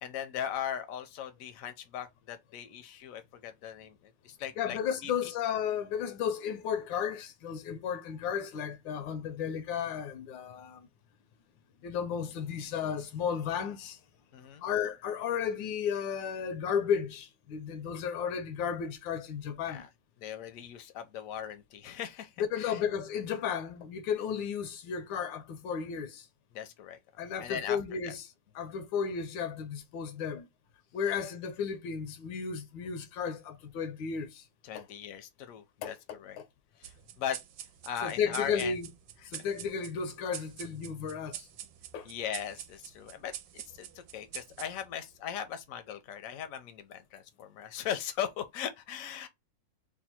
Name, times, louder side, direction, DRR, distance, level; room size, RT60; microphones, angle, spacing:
voice 1, 0.0-5.3 14.3-14.6 19.7-19.9 20.2-22.8 26.5-27.0 27.4-27.8 28.0-28.1 34.6-36.4 36.8-37.4 37.8-38.7 39.3-39.4 42.0-49.3, left 9 dB, 65° left, 0.8 m, -39 dB
voice 2, 4.6-10.8 11.8-14.0 14.6-19.8 22.4-26.3 27.2-28.2 28.5-30.5 30.9-34.4 34.7-34.8 35.8-36.5 38.0-38.9 39.3-41.5 41.9-42.1, left 7 dB, 85° left, 1.3 m, -34 dB
sound 1, 36.8-45.7, right 11 dB, 80° right, 1.3 m, -47 dB
3.4 x 2.2 x 4.2 m
omnidirectional pair, 2.0 m